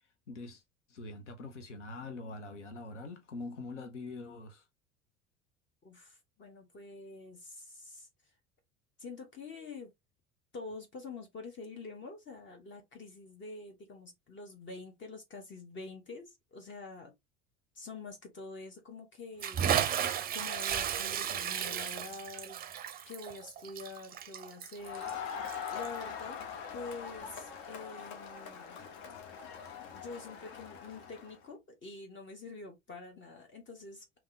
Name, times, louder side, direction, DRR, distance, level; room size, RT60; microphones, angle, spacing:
voice 1, 0.3-0.6 0.9-4.7, left 3 dB, 75° left, 0.9 m, -44 dB
voice 2, 5.8-8.1 9.0-9.9 10.5-17.1 17.7-19.6 20.3-22.6 23.1-25.1 25.7-26.4 26.7-28.9 29.9-34.0, left 3 dB, 30° left, 1.3 m, -46 dB
Bathtub (filling or washing) / Splash splatter, 19.4-26.0, right 9 dB, 25° right, 0.5 m, -34 dB
Crowd, 24.8-31.4, left 7 dB, 55° left, 1.0 m, -42 dB
3.5 x 3.0 x 3.3 m
figure-of-eight pair, 65°, 36 cm